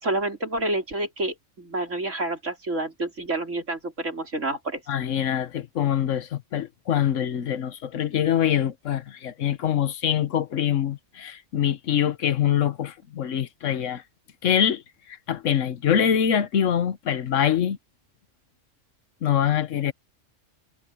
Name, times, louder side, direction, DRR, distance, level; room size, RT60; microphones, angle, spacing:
voice 1, 0.0-4.8, right 2 dB, 80° right, 4.7 m, -28 dB
voice 2, 4.9-14.0 14.4-14.8 15.3-17.8 19.2-19.9, left 9 dB, 85° left, 1.3 m, -24 dB
omnidirectional pair, 1.3 m